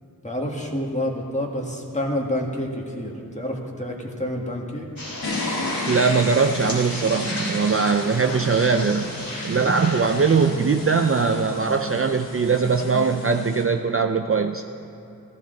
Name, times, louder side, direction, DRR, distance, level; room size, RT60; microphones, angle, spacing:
voice 1, 0.2-4.9, left 1 dB, 20° left, -1 dB, 1.9 m, -28 dB
sound 1, 5.0-11.8, left 1 dB, 65° left, 3.1 m, -34 dB
sound 2, 5.2-13.6, left 2 dB, 90° left, 1.7 m, -34 dB
voice 2, 5.9-9.1 9.4-14.6, right 5 dB, 40° right, 5 dB, 0.5 m, -21 dB
15.0 x 15.0 x 3.9 m, 2.8 s
wide cardioid pair, 90°, 37 cm